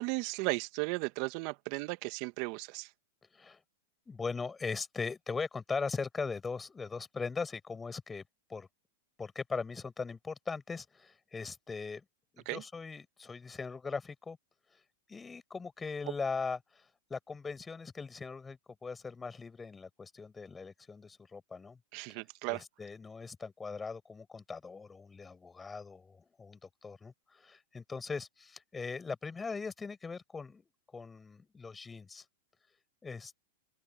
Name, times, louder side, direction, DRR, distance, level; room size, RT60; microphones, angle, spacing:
voice 1, 0.0-2.9 12.5-12.6 21.9-22.6, right 26 dB, 50° right, 1.8 m, -35 dB
voice 2, 4.1-8.2 8.5-8.7 9.2-12.0 12.3-14.4 14.7-14.8 15.1-21.8 22.1-22.2 22.5-32.2 33.0-33.4, left 4 dB, 15° left, 6.4 m, -40 dB
open air
hypercardioid pair, 115°, 0 cm